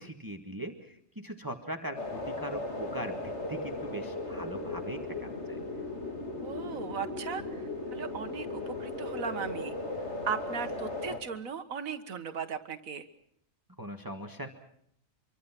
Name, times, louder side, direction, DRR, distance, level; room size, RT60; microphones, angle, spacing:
voice 1, 0.0-5.6 13.8-14.5, right 1 dB, 15° right, 5 dB, 2.0 m, -40 dB
sound 1, 1.9-11.2, left 2 dB, 55° left, 3.8 m, -37 dB
voice 2, 6.4-7.6 7.9-9.8 10.2-13.1, right 6 dB, 90° right, 9 dB, 1.9 m, -37 dB
26.0 x 24.5 x 6.0 m, 0.70 s
omnidirectional pair, 1.4 m